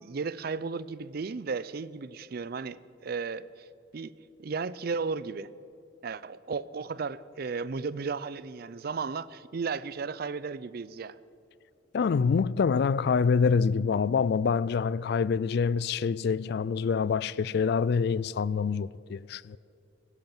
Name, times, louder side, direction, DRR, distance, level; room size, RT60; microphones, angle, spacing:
voice 1, 0.0-3.7 3.9-4.1 4.4-5.5 6.0-11.2, right 4 dB, 50° right, 0.4 m, -34 dB
voice 2, 11.9-19.6, left 5 dB, 55° left, 0.3 m, -26 dB
17.5 x 11.0 x 7.2 m
head